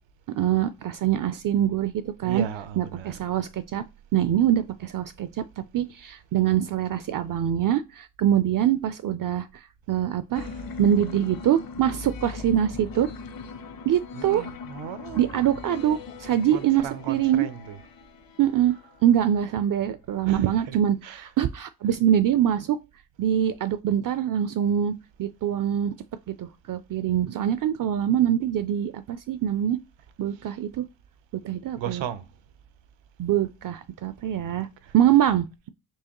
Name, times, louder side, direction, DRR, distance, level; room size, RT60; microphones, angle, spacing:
voice 1, 0.3-2.4 2.8-3.8 4.1-9.5 9.9-10.5 10.8-13.1 13.9-14.5 15.2-17.5 18.4-18.7 19.0-22.8 23.2-24.9 25.2-26.0 26.3-29.8 30.2-30.8 31.3-32.0 33.2-34.7 34.9-35.7, right 10 dB, 50° right, 0.4 m, -24 dB
voice 2, 2.2-3.1 10.4-10.6 14.1-15.4 16.5-17.8 20.2-21.3 31.8-32.3 34.5-34.9, right 9 dB, 80° right, 0.7 m, -36 dB
sound 1, 10.3-19.4, left 4 dB, 50° left, 0.9 m, -40 dB
4.6 x 2.8 x 3.0 m
cardioid pair, 70°, 44 cm